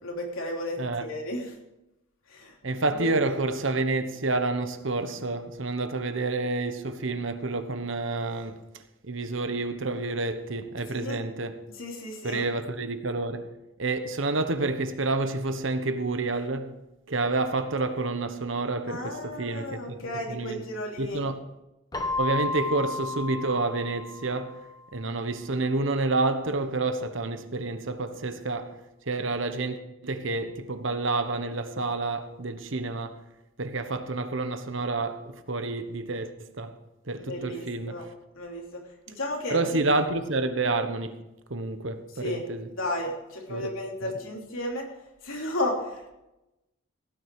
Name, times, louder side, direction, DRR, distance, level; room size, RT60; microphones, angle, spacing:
voice 1, 0.0-1.5 2.3-2.5 2.9-3.1 10.9-11.2 11.8-12.5 18.9-21.2 37.2-38.0 38.3-38.8 39.1-39.8 42.2-42.4 42.7-44.8 45.2-46.1, left 1 dB, 80° left, 3.2 m, -33 dB
voice 2, 2.6-8.7 9.0-11.6 12.2-13.5 13.8-16.8 17.1-20.6 21.0-21.4 22.2-24.6 24.9-28.8 29.1-29.8 30.0-33.2 33.6-36.8 37.1-38.0 39.5-41.2 41.5-42.7 43.5-43.7 44.0-44.2, right 2 dB, 70° right, 1.2 m, -29 dB
Keyboard (musical), 21.9-24.7, left 3 dB, 20° left, 1.2 m, -32 dB
16.5 x 9.9 x 4.8 m
head